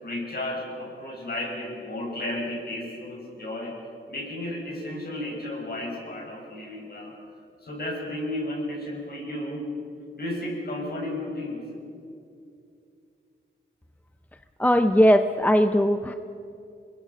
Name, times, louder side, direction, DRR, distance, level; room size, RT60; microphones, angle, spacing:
voice 1, 0.0-3.7 4.1-7.1 7.6-9.7 10.1-11.6, left 1 dB, 50° left, -1 dB, 6.2 m, -33 dB
voice 2, 14.6-16.1, equal, 10° left, 8 dB, 0.6 m, -19 dB
28.0 x 21.5 x 5.5 m, 2.5 s
wide cardioid pair, 125°, 20 cm